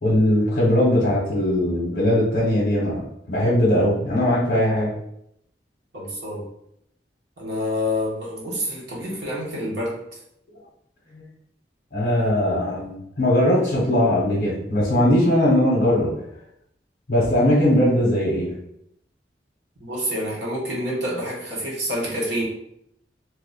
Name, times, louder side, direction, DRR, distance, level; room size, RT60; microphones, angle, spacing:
voice 1, 0.0-3.0 3.3-4.9 11.1-11.2 11.9-16.1 17.1-18.5, left 1 dB, 60° left, -5 dB, 0.9 m, -20 dB
voice 2, 5.9-6.5 7.4-10.0 19.8-22.4, left 1 dB, 80° right, -4 dB, 1.3 m, -27 dB
3.0 x 2.4 x 3.9 m, 0.75 s
head